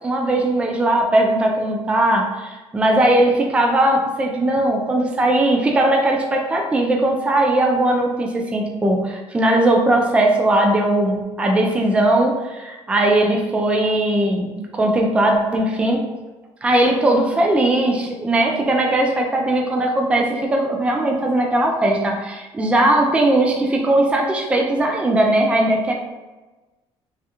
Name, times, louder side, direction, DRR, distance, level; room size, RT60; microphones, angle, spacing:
voice 1, 0.0-16.1 16.6-25.9, right 1 dB, 10° right, 1 dB, 0.4 m, -19 dB
3.4 x 2.3 x 2.8 m, 1.2 s
cardioid pair, 155°, 11 cm